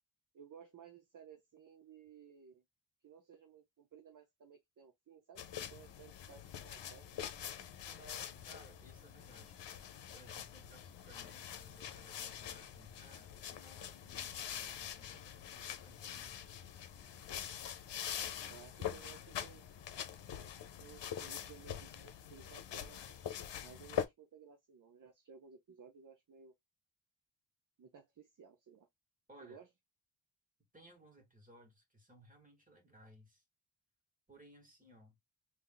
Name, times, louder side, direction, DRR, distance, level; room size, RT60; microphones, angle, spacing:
voice 1, 0.3-2.6 3.0-7.1 18.5-19.6 20.8-23.0 23.3-26.5 27.8-28.9 29.4-29.7, right 7 dB, 45° right, 0.8 m, -57 dB
sound 1, 5.4-24.1, left 9 dB, 70° left, 0.9 m, -44 dB
voice 2, 7.8-9.6 10.1-16.7 29.3-29.6 30.7-33.4 34.3-35.1, equal, 20° right, 2.3 m, -61 dB
3.6 x 2.8 x 3.9 m
wide cardioid pair, 130°, 44 cm